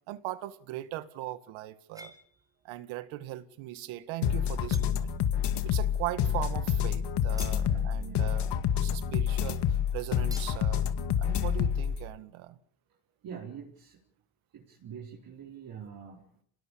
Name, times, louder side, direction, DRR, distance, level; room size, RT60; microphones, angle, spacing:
voice 1, 0.1-2.1 2.6-5.1 5.6-10.9 11.2-12.6, right 15 dB, 75° right, 1.9 m, -39 dB
sound 1, 1.9-2.6 3.0-3.5 4.0-4.1 4.4-5.5 5.8-9.5 9.8-9.9 10.3-10.7, right 1 dB, 10° right, 6.2 m, -51 dB
sound 2, 4.2-12.0, left 9 dB, 55° left, 2.1 m, -28 dB
voice 2, 7.3-8.3 13.2-14.0 14.5-16.3, right 7 dB, 45° right, 4.5 m, -45 dB
26.5 x 19.0 x 8.6 m
cardioid pair, 120°, 47 cm